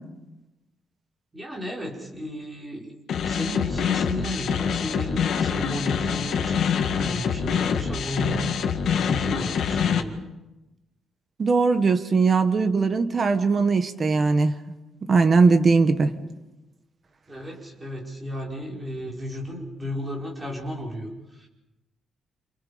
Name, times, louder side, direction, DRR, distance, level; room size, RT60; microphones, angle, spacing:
voice 1, 1.3-8.4 8.9-10.2 17.3-21.5, equal, 15° right, -2 dB, 5.4 m, -34 dB
sound 1, 3.1-10.0, left 7 dB, 65° left, 1.9 m, -25 dB
voice 2, 11.4-14.5 15.1-16.1, right 4 dB, 30° right, 9 dB, 1.5 m, -20 dB
29.0 x 27.5 x 5.2 m, 1.0 s
cardioid pair, 165°, 0 cm